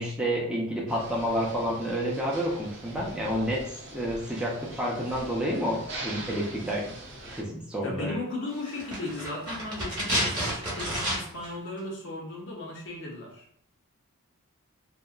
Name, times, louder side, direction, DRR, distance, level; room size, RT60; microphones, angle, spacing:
voice 1, 0.0-7.0 7.3-8.1, equal, 5° right, -5 dB, 0.5 m, -29 dB
sound 1, 0.9-7.4, right 2 dB, 55° right, 0.6 m, -42 dB
voice 2, 7.8-13.5, left 2 dB, 55° left, -2 dB, 0.6 m, -36 dB
sound 2, 8.7-11.5 11.8-11.9, equal, 20° right, 1.0 m, -30 dB
2.7 x 2.3 x 2.3 m, 0.64 s
head